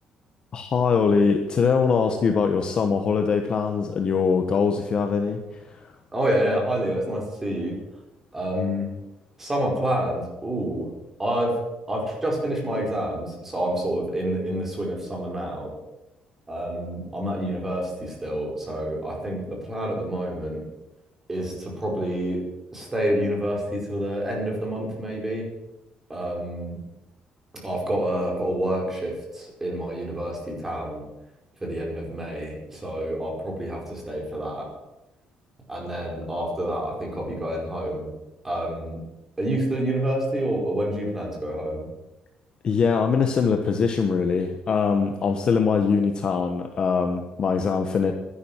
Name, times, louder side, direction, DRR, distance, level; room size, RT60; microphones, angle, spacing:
voice 1, 0.5-5.9 42.6-48.1, left 5 dB, 40° left, 5 dB, 1.3 m, -22 dB
voice 2, 6.1-7.8 8.3-8.9 9.4-10.9 11.2-11.6 11.9-15.7 16.5-20.6 21.3-22.4 22.7-25.5 26.1-26.8 27.6-31.0 31.6-34.7 35.7-38.1 38.4-39.0 39.4-41.9, right 1 dB, 15° right, -1 dB, 5.0 m, -28 dB
12.0 x 11.5 x 9.0 m, 0.98 s
cardioid pair, 155°, 2 cm